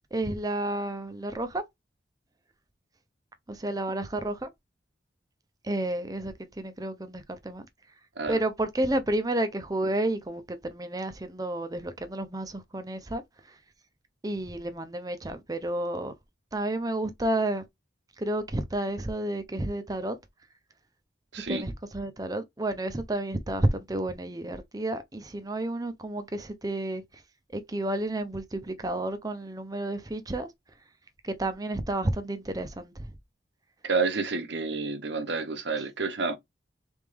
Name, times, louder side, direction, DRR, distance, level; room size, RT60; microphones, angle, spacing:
voice 1, 0.1-1.6 3.5-4.5 5.6-7.6 8.3-13.2 14.2-16.1 16.5-17.6 18.2-20.2 21.5-27.0 27.5-30.5 31.2-33.1, right 1 dB, 20° right, 0.6 m, -31 dB
voice 2, 21.3-21.6 33.8-36.4, right 4 dB, 80° right, 1.1 m, -29 dB
3.9 x 3.5 x 3.3 m
head